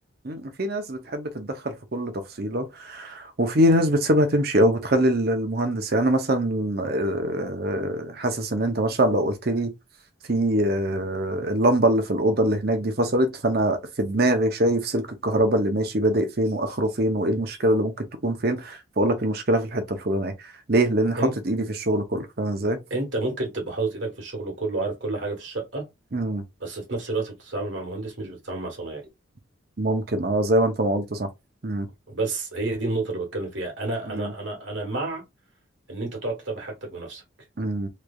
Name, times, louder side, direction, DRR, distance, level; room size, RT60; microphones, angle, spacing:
voice 1, 0.2-2.1 2.4-9.7 10.3-20.3 20.7-22.8 26.1-26.4 29.8-31.3 31.6-31.9 34.1-34.3 37.6-37.9, right 1 dB, 50° right, 0.8 m, -23 dB
voice 2, 22.9-25.8 26.6-29.0 32.1-35.2 35.9-37.2, right 2 dB, 65° right, 1.6 m, -30 dB
3.3 x 3.2 x 2.4 m
head